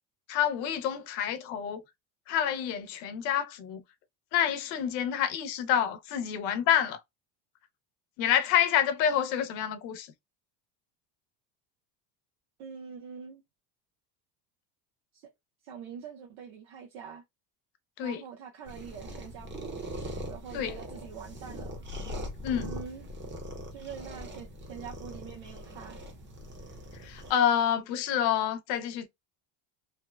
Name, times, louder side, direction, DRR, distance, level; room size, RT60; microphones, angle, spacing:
voice 1, 0.3-1.8 2.3-3.8 4.3-7.0 8.2-10.1 18.0-18.2 20.5-20.7 22.4-22.7 27.0-29.1, left 9 dB, 80° left, 0.8 m, -28 dB
voice 2, 12.6-13.4 15.1-15.3 15.6-17.2 18.0-19.8 20.3-21.8 22.5-23.1 23.7-26.0, right 7 dB, 75° right, 0.9 m, -44 dB
sound 1, 18.7-27.3, equal, 25° right, 0.9 m, -41 dB
2.9 x 2.0 x 2.2 m
supercardioid pair, 90°, 49 cm